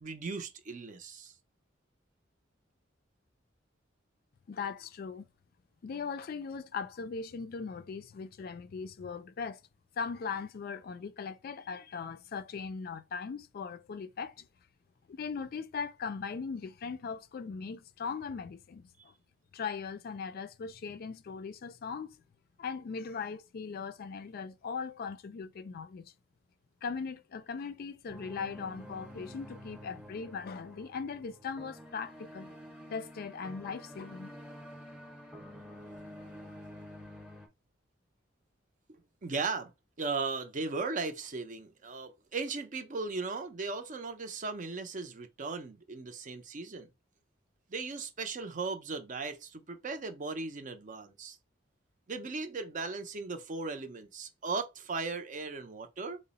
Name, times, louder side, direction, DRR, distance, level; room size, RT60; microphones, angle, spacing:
voice 1, 0.0-1.3 39.2-39.7 40.0-46.9 47.7-51.4 52.1-56.2, right 4 dB, 45° right, 0.5 m, -37 dB
voice 2, 4.5-5.3 5.8-9.6 10.0-14.5 15.1-19.1 19.5-22.2 22.6-26.1 26.8-32.5 32.9-34.3, left 5 dB, 55° left, 0.3 m, -39 dB
sound 1, 28.1-37.5, equal, 5° right, 0.7 m, -49 dB
3.8 x 2.0 x 3.9 m
head